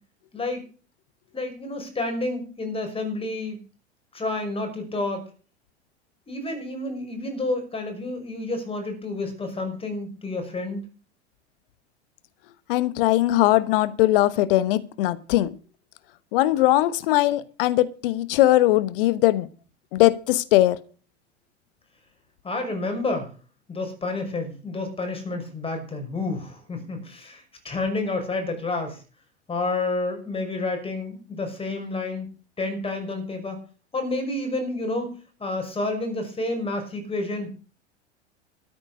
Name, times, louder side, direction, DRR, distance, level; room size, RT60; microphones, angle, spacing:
voice 1, 0.3-0.7 1.3-3.6 4.1-5.3 6.3-10.8 22.4-23.3 23.7-29.0 29.5-32.3 32.6-33.6 33.9-35.1 35.4-37.5, left 2 dB, 15° left, 5.9 m, -29 dB
voice 2, 12.7-15.5 16.3-19.5 19.9-20.8, left 16 dB, 50° left, 1.2 m, -20 dB
13.5 x 9.6 x 6.3 m
figure-of-eight pair, 85°, 35 cm